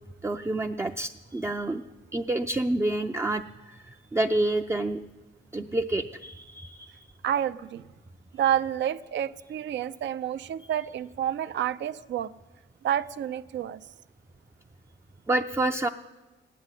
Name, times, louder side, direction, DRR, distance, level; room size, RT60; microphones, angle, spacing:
voice 1, 0.2-1.8 2.1-5.0 5.5-7.0 15.3-15.9, right 2 dB, 15° right, 4 dB, 0.5 m, -28 dB
voice 2, 7.2-7.8 8.3-12.3 12.8-13.8, right 10 dB, 65° right, 13 dB, 0.6 m, -29 dB
15.0 x 9.4 x 9.9 m, 1.2 s
cardioid pair, 90°, 20 cm